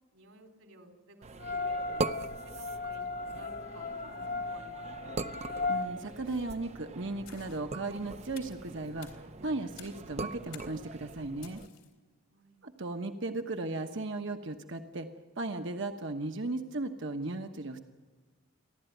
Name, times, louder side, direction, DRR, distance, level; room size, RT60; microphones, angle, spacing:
voice 1, 0.1-5.3 12.3-12.6, right 2 dB, 80° right, 3 dB, 3.8 m, -55 dB
sound 1, 1.2-11.7, right 3 dB, 35° right, 0.6 m, -42 dB
sound 2, 1.4-5.9, left 3 dB, 45° left, 0.7 m, -36 dB
voice 2, 5.7-11.6 12.6-15.1 15.4-17.8, right 2 dB, 65° right, 5 dB, 1.2 m, -36 dB
sound 3, 6.2-6.6 7.3-7.6 8.4-8.6 9.0-9.2 9.8-10.1 10.5-10.8 11.4-11.9, left 9 dB, 90° left, 3.7 m, -52 dB
29.5 x 12.0 x 9.2 m, 1.3 s
head